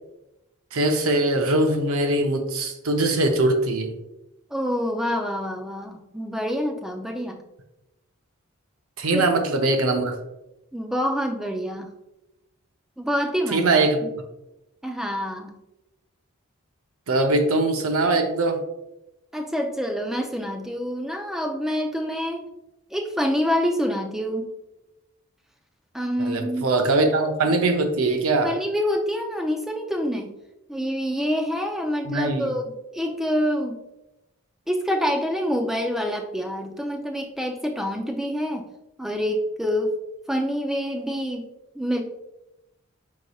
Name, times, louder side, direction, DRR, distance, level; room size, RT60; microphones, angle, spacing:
voice 1, 0.7-4.0 9.0-10.2 13.5-14.0 17.1-18.6 26.2-28.5 32.1-32.5, right 2 dB, 75° right, 5 dB, 0.6 m, -22 dB
voice 2, 4.5-7.4 9.1-9.3 10.7-11.9 13.0-13.7 14.0-14.1 14.8-15.6 19.3-22.5 22.9-24.5 25.9-26.7 28.4-30.3 30.7-32.6 32.9-33.8 34.7-38.7 39.0-39.9 40.3-41.5 41.8-42.0, equal, ahead, 3 dB, 0.3 m, -26 dB
4.7 x 4.0 x 2.3 m, 0.93 s
head